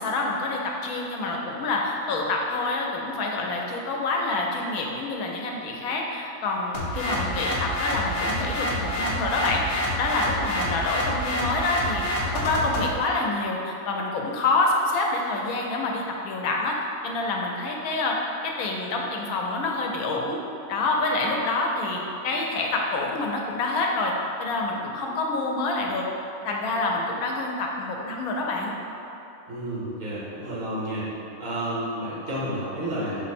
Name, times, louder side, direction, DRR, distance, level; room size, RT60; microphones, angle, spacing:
voice 1, 0.0-12.0 12.3-18.2 18.4-20.4 20.7-24.1 24.4-26.1 26.4-28.7, left 2 dB, 90° left, 0 dB, 1.1 m, -27 dB
sound 1, 6.7-12.9, left 1 dB, 60° left, 0.9 m, -28 dB
voice 2, 29.5-31.1 31.4-33.2, right 1 dB, 65° right, -7 dB, 1.4 m, -30 dB
5.3 x 2.1 x 4.2 m, 2.8 s
omnidirectional pair, 1.5 m